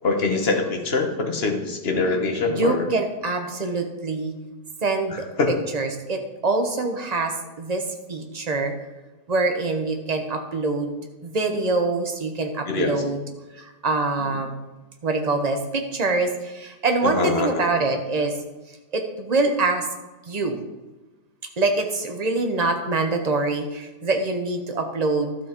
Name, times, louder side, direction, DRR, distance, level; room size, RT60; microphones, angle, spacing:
voice 1, 0.0-2.9 5.1-5.5 12.7-13.0 14.2-14.3 17.0-17.9, left 3 dB, 40° left, 3 dB, 1.2 m, -24 dB
voice 2, 2.5-4.3 4.8-5.3 5.7-7.8 8.1-8.7 9.3-10.9 11.2-13.2 13.5-14.5 15.0-18.4 18.9-19.9 20.3-20.6 21.6-25.4, right 3 dB, 30° right, 4 dB, 0.8 m, -24 dB
12.5 x 6.4 x 4.5 m, 1.1 s
omnidirectional pair, 1.9 m